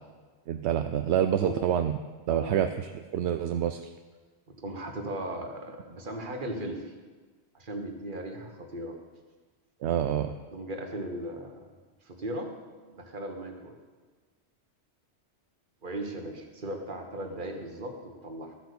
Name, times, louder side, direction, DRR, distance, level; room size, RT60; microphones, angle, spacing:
voice 1, 0.5-1.9 2.3-3.9 9.8-10.3, right 10 dB, 75° right, 8 dB, 0.8 m, -27 dB
voice 2, 4.6-6.9 7.5-9.0 10.5-11.7 12.0-12.5 12.9-13.8 15.8-18.6, right 1 dB, 50° right, 3 dB, 1.6 m, -37 dB
13.0 x 8.0 x 6.8 m, 1.4 s
omnidirectional pair, 1.2 m